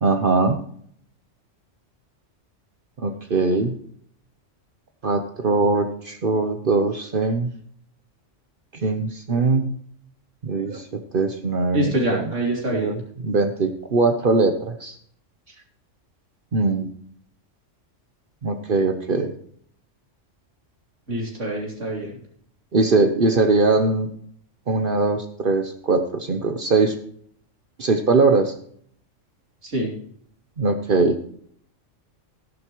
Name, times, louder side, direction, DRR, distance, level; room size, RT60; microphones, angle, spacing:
voice 1, 0.0-0.6 3.0-3.7 5.0-7.5 8.7-9.7 10.4-10.9 11.1-12.2 12.7-15.0 16.5-16.9 18.4-19.3 22.7-24.1 24.7-26.9 27.8-28.5 30.6-31.2, right 3 dB, 50° right, 7 dB, 1.0 m, -21 dB
voice 2, 11.7-12.9 21.1-22.1 29.6-29.9, right 1 dB, 70° right, -2 dB, 3.3 m, -25 dB
13.5 x 10.5 x 3.0 m, 0.62 s
omnidirectional pair, 1.3 m